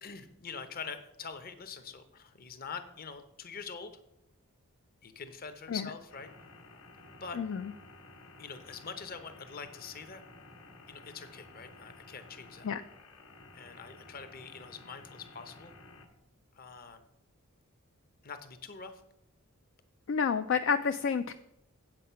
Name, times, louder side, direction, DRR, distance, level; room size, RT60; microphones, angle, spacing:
voice 1, 0.0-3.9 5.0-6.3 7.1-7.4 8.4-10.2 10.9-12.7 13.5-15.7 16.5-17.0 18.2-19.0, left 5 dB, 40° left, 9 dB, 0.9 m, -44 dB
sound 1, 6.1-16.1, left 2 dB, 85° left, 1.6 m, -53 dB
voice 2, 7.4-7.7 12.6-12.8 20.1-21.3, left 6 dB, 60° left, 9 dB, 0.4 m, -29 dB
8.3 x 7.6 x 5.6 m, 0.82 s
head